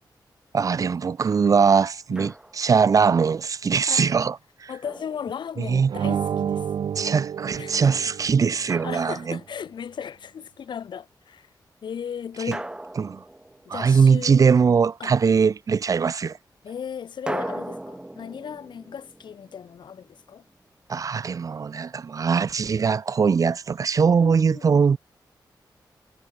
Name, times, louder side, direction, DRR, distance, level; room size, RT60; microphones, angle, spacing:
voice 1, 0.5-4.7 5.6-5.9 7.0-9.4 12.5-12.6 13.0-13.2 13.7-16.4 20.9-25.0, right 6 dB, 45° right, 0.6 m, -21 dB
Drum, 2.2-2.8 4.8-5.9 8.7-9.9 12.5-14.2 17.3-20.2, right 1 dB, 10° right, 1.2 m, -38 dB
voice 2, 4.7-6.6 7.6-8.1 8.5-11.5 11.8-12.7 13.7-14.5 15.0-15.1 16.6-20.4 24.2-24.8, left 8 dB, 80° left, 2.9 m, -36 dB
sound 1, 5.9-8.6, right 8 dB, 80° right, 0.8 m, -29 dB
wide cardioid pair, 115°, 8 cm